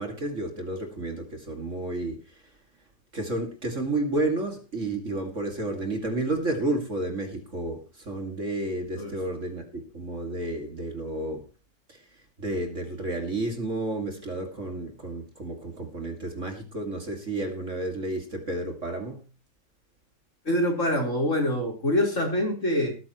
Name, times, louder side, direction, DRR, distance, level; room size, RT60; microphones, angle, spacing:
voice 1, 0.0-2.4 3.1-11.5 11.9-19.3, right 2 dB, 40° right, 2.7 m, -31 dB
voice 2, 20.4-23.0, left 1 dB, 40° left, 4.6 m, -25 dB
18.5 x 9.8 x 3.1 m
omnidirectional pair, 2.0 m